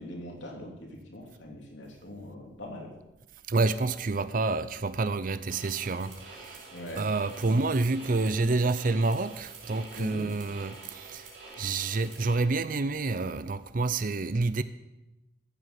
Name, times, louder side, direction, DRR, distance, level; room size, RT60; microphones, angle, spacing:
voice 1, 0.0-2.9 6.7-7.1 7.4-7.6 9.9-10.3, left 1 dB, 75° left, 2.9 m, -41 dB
voice 2, 3.5-6.7 7.0-11.3 11.6-14.6, right 3 dB, 45° right, 0.6 m, -28 dB
sound 1, 5.5-12.3, right 3 dB, 85° right, 5.2 m, -48 dB
14.5 x 8.1 x 6.0 m
head